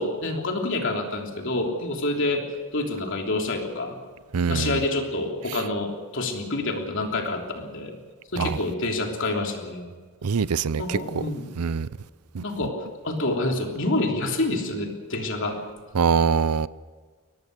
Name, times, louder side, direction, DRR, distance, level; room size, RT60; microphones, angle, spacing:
voice 1, 0.0-2.4 2.7-4.0 4.5-8.0 8.3-9.9 10.8-11.8 12.4-15.6, left 2 dB, 55° left, 3.3 m, -27 dB
voice 2, 4.3-4.7 8.4-8.5 10.2-11.0 11.6-11.9 12.3-12.4 16.0-16.7, right 6 dB, 85° right, 0.6 m, -23 dB
23.0 x 19.0 x 6.7 m
head